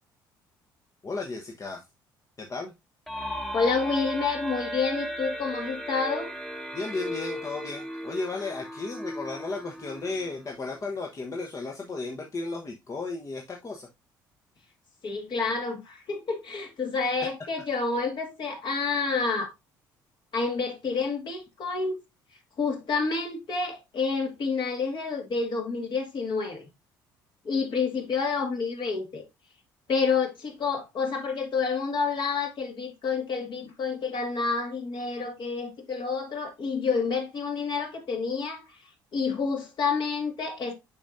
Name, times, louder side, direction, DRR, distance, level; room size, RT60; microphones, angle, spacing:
voice 1, 1.0-1.8 2.4-2.7 6.7-13.9, left 3 dB, 30° left, 1.1 m, -34 dB
sound 1, 3.1-10.7, equal, 5° left, 1.2 m, -36 dB
voice 2, 3.5-6.3 15.0-19.5 20.3-22.0 22.6-26.7 27.4-29.2 29.9-38.8 39.1-40.7, left 4 dB, 50° left, 2.1 m, -29 dB
6.9 x 5.3 x 2.6 m
hypercardioid pair, 55°, 10 cm